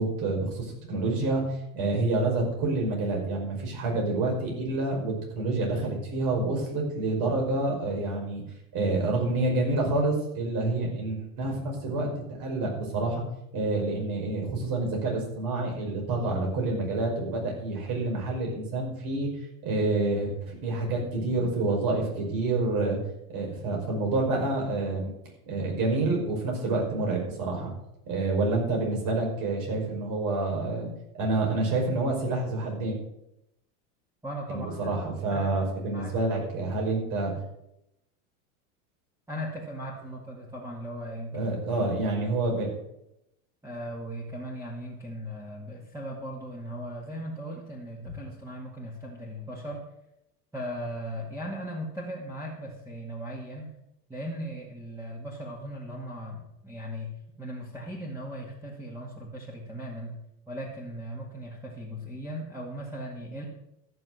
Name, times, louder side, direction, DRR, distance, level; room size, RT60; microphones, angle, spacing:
voice 1, 0.0-8.4 8.7-12.1 12.4-13.2 13.5-19.3 19.6-23.0 23.3-25.1 25.5-27.7 28.1-30.9 31.2-33.0 34.5-37.3 41.3-42.7, right 2 dB, 50° right, 0 dB, 5.6 m, -28 dB
voice 2, 34.2-34.9 35.3-35.5 35.9-36.1 39.3-41.5 43.6-49.8 50.5-53.7 54.1-57.1 57.4-60.1 60.5-63.5, equal, 5° right, -4 dB, 2.2 m, -38 dB
14.0 x 6.6 x 6.5 m, 0.83 s
supercardioid pair, 120°, 45 cm